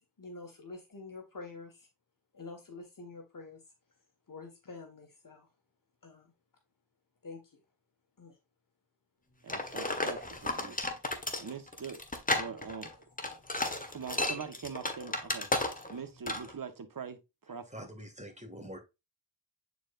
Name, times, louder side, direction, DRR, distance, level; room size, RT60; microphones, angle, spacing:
voice 1, 0.2-1.9 2.3-3.6 4.3-5.5 6.0-6.3 7.2-7.6 8.2-8.4, left 3 dB, 50° left, 1.8 m, -47 dB
voice 2, 9.4-10.8 11.4-12.0 12.3-12.9 13.9-15.5 15.9-17.7, right 6 dB, 50° right, 1.4 m, -43 dB
sound 1, 9.5-16.0 16.3-16.5, left 2 dB, 20° left, 1.5 m, -33 dB
voice 3, 17.7-18.8, equal, 15° right, 2.2 m, -45 dB
9.1 x 4.7 x 2.6 m
wide cardioid pair, 80°, 41 cm